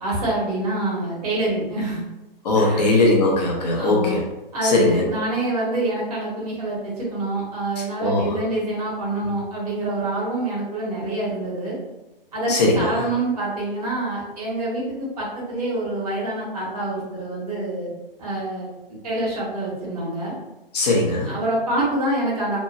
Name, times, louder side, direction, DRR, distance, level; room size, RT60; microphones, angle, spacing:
voice 1, 0.0-2.0 2.5-2.8 3.7-4.2 4.5-11.8 12.3-17.9 18.2-20.3 21.3-22.6, right 1 dB, 40° right, -6 dB, 1.3 m, -26 dB
voice 2, 2.4-4.2 4.6-5.0 8.0-8.4 12.5-13.1 20.7-21.3, left 2 dB, 45° left, -2 dB, 0.8 m, -19 dB
2.9 x 2.2 x 2.5 m, 1.0 s
figure-of-eight pair, 130°, 29 cm